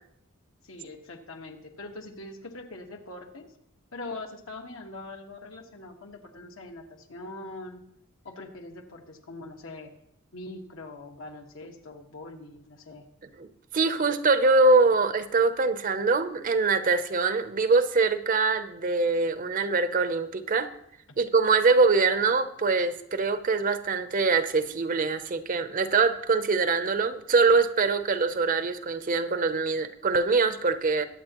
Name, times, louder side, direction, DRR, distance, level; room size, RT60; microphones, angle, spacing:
voice 1, 0.6-3.5 3.9-7.8 8.2-9.9 10.3-13.1 21.1-21.2, left 2 dB, 75° left, 3 dB, 1.5 m, -42 dB
voice 2, 13.7-20.7 21.2-31.0, right 3 dB, 40° right, 11 dB, 0.7 m, -23 dB
22.0 x 8.2 x 3.0 m, 0.74 s
head